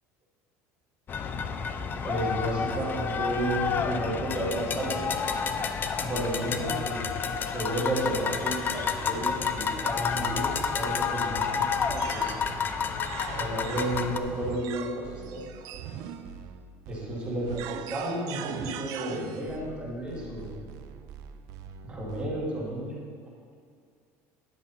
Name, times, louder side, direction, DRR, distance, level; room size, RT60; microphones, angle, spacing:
sound 1, 1.1-14.2, left 6 dB, 30° left, 0.5 m, -30 dB
voice 1, 2.0-5.1 6.0-7.0 7.5-12.3 13.3-15.5 16.9-20.6 21.8-23.0, right 1 dB, 15° right, -6 dB, 2.4 m, -32 dB
sound 2, 11.9-22.4, right 9 dB, 60° right, 0.5 m, -41 dB
10.5 x 7.1 x 4.2 m, 2.2 s
cardioid pair, 140°, 7 cm